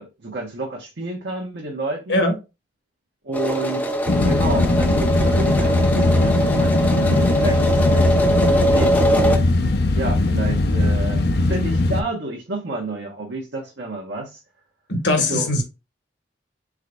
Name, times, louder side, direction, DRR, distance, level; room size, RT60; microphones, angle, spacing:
voice 1, 0.0-2.2 3.2-3.9 4.2-9.5 9.9-14.4 15.2-15.5, right 2 dB, 80° right, 1.1 m, -30 dB
sound 1, 3.3-9.4, right 1 dB, 10° left, 0.6 m, -22 dB
sound 2, 4.1-12.0, left 2 dB, 60° left, 0.5 m, -19 dB
voice 2, 14.9-15.6, left 2 dB, 85° left, 1.4 m, -20 dB
4.7 x 3.8 x 2.2 m
head